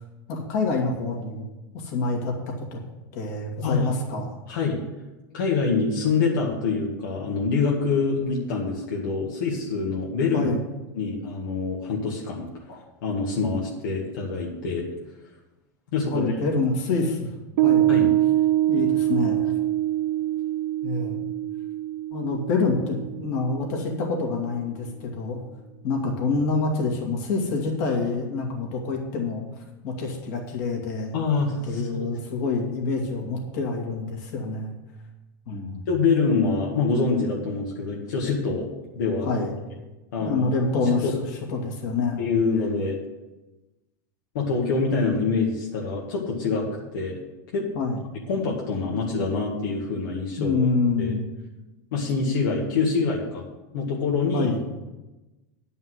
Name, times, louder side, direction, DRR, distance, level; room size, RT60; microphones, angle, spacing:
voice 1, 0.3-1.4 1.7-2.3 2.7-2.8 3.1-4.3 10.3-10.6 12.7-12.8 16.1-17.3 17.6-17.9 18.7-19.5 20.8-21.2 22.1-25.4 25.8-29.4 29.8-31.1 31.6-34.7 35.5-35.8 39.2-39.5 40.2-41.1 41.5-42.2 47.7-48.0 50.4-51.3 54.3-54.6, left 3 dB, 60° left, 0 dB, 2.6 m, -26 dB
voice 2, 4.5-4.8 5.3-10.5 11.0-12.5 13.0-14.9 15.9-16.3 17.9-18.1 31.1-32.1 35.9-38.7 38.9-39.3 40.1-40.4 40.7-41.1 42.2-43.0 44.3-47.2 47.5-47.7 48.3-50.6 51.0-51.2 51.9-53.4 53.7-54.5, left 4 dB, 80° left, -3 dB, 2.0 m, -25 dB
Piano, 17.6-24.3, right 14 dB, 55° right, 0.4 m, -24 dB
9.8 x 5.5 x 7.8 m, 1.1 s
supercardioid pair, 150°, 11 cm